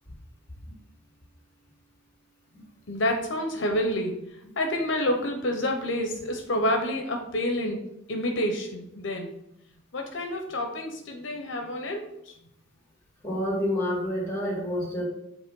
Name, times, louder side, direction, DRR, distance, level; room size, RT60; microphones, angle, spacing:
voice 1, 2.9-4.2 4.6-7.8 8.1-9.3 9.9-12.3, left 1 dB, 65° left, 3 dB, 0.8 m, -28 dB
voice 2, 13.2-15.0, equal, 15° left, -3 dB, 2.4 m, -28 dB
8.2 x 3.2 x 5.2 m, 0.82 s
head